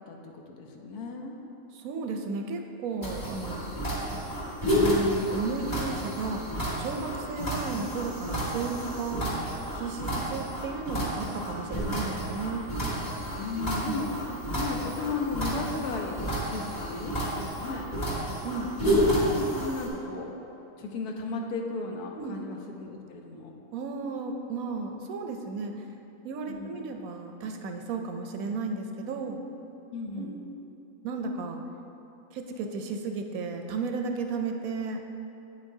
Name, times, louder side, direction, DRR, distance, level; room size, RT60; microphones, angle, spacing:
voice 1, 0.1-1.3 13.3-14.2 14.5-17.9 18.8-20.3 20.8-23.5 26.5-26.9 29.9-30.4, left 3 dB, 80° left, 2 dB, 1.3 m, -35 dB
voice 2, 1.7-3.7 4.7-6.4 6.8-9.3 9.7-12.7 13.9-14.0 18.4-18.7 22.2-22.4 23.7-25.8 26.2-29.4 30.2-30.3 31.0-31.6 32.3-35.0, right 4 dB, 70° right, 4 dB, 1.0 m, -34 dB
sound 1, 3.0-19.9, equal, 25° left, 1.6 m, -30 dB
8.6 x 8.2 x 2.7 m, 3.0 s
omnidirectional pair, 1.6 m